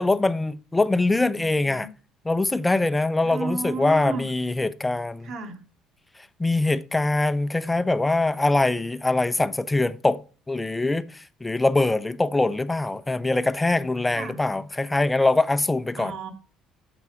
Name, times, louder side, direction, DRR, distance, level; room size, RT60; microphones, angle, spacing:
voice 1, 0.0-1.9 2.2-5.3 6.4-16.2, left 2 dB, 15° left, 0.8 m, -23 dB
voice 2, 3.2-4.3 5.2-5.6 14.1-14.4 16.0-16.3, right 4 dB, 60° right, 2.1 m, -32 dB
9.3 x 7.2 x 4.7 m
supercardioid pair, 75°, 0 cm